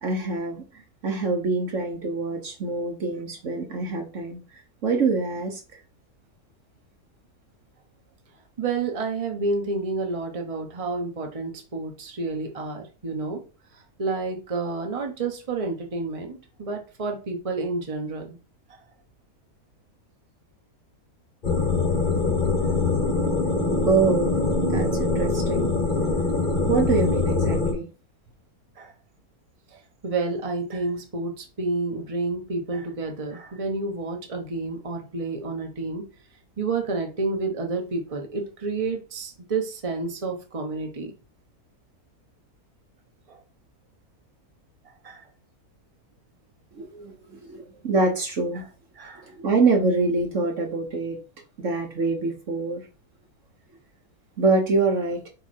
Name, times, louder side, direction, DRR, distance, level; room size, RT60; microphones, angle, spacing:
voice 1, 0.0-0.6 1.0-4.4 4.8-5.6 23.9-24.4 24.6-25.7 26.7-27.9 46.8-48.7 49.3-51.2 51.6-52.8 54.4-55.3, right 3 dB, 55° right, 1.3 m, -25 dB
voice 2, 8.6-13.4 14.0-18.4 28.8-28.9 29.7-36.0 36.6-41.1 43.3-43.4 45.0-45.2 48.6-48.7 49.0-49.3, right 3 dB, 25° right, 1.1 m, -30 dB
sound 1, 21.4-27.7, left 3 dB, 30° left, 1.3 m, -23 dB
5.2 x 4.7 x 4.4 m
omnidirectional pair, 1.6 m